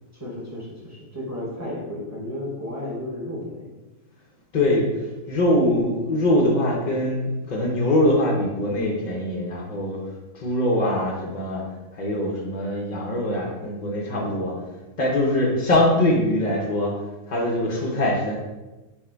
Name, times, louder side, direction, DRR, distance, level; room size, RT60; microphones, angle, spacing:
voice 1, 0.1-3.7 15.2-15.6, left 1 dB, 15° right, -5 dB, 0.6 m, -33 dB
voice 2, 4.5-10.0 10.3-11.6 11.9-14.5 15.0-16.9 17.3-18.3, left 1 dB, 85° left, -2 dB, 0.4 m, -22 dB
4.6 x 2.1 x 4.4 m, 1.1 s
omnidirectional pair, 1.7 m